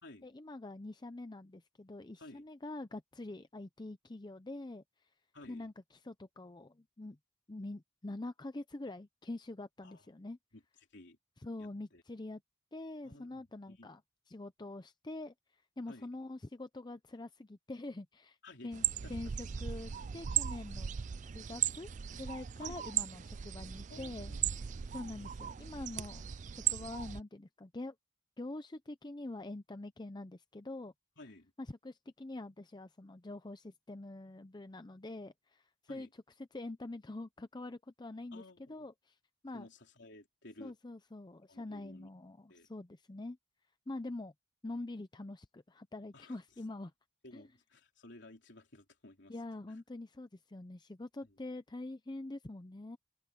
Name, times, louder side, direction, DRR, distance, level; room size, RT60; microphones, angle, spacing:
voice 1, 0.2-4.8 5.5-7.2 7.5-10.4 11.4-12.4 12.7-14.0 14.3-18.4 18.6-20.9 21.3-24.6 24.9-26.2 26.5-27.9 28.4-30.9 31.6-36.1 36.5-39.2 39.4-39.7 40.6-43.4 43.9-44.3 44.6-46.9 47.3-47.4 49.3-53.0, left 2 dB, 20° left, 0.5 m, -45 dB
voice 2, 5.3-5.7 9.8-10.0 10.5-10.6 10.9-11.2 11.6-12.0 13.0-13.9 15.9-16.1 18.4-18.7 19.0-19.1 22.6-22.8 23.9-24.4 24.7-25.3 31.2-31.5 35.9-36.1 38.3-38.8 39.5-40.7 41.5-42.1 42.5-42.7 46.1-46.4 47.2-49.3 51.2-51.4, left 2 dB, 60° left, 3.8 m, -55 dB
sound 1, 18.7-27.2, right 10 dB, 35° right, 0.4 m, -37 dB
head